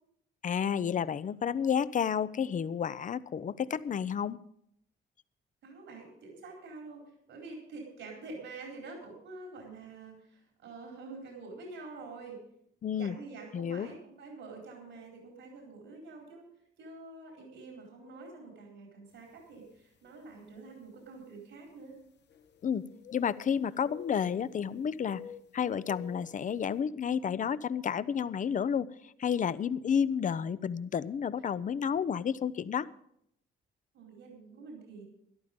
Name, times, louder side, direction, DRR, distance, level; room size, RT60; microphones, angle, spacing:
voice 1, 0.4-4.4 12.8-13.1 13.5-13.9 22.6-22.8 23.1-25.2 25.5-32.9, left 7 dB, 40° left, 17 dB, 0.6 m, -31 dB
voice 2, 5.6-12.4 12.9-16.4 16.8-21.9 33.9-35.0, right 3 dB, 80° right, 0 dB, 4.2 m, -47 dB
sound 1, 19.4-19.5 20.3-20.4 22.3-23.5 23.8-24.7 25.1-26.4, left 8 dB, 60° left, 1.0 m, -49 dB
13.5 x 11.5 x 5.2 m, 0.72 s
cardioid pair, 90°, 20 cm